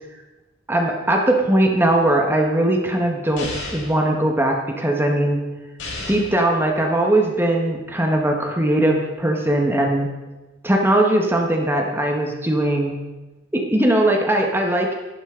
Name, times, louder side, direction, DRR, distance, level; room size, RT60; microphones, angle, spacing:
voice 1, 0.7-5.4 6.1-10.1 10.6-12.9 13.5-14.9, right 1 dB, 10° right, 1 dB, 1.3 m, -20 dB
sound 1, 3.4-4.0 5.8-6.4, left 2 dB, 65° left, 4.7 m, -32 dB
12.0 x 11.5 x 3.8 m, 1.1 s
head